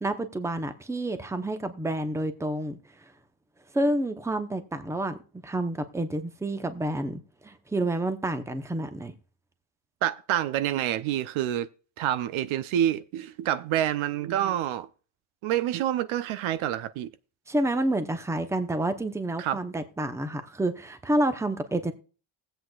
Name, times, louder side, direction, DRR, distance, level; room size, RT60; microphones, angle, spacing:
voice 1, 0.0-2.8 3.7-5.2 5.4-9.1 17.5-21.9, right 1 dB, 5° right, 0.7 m, -29 dB
voice 2, 10.0-11.7 12.0-14.9 15.4-17.1 19.4-19.6, right 11 dB, 70° right, 0.7 m, -27 dB
20.0 x 8.0 x 2.4 m
cardioid pair, 115°, 49 cm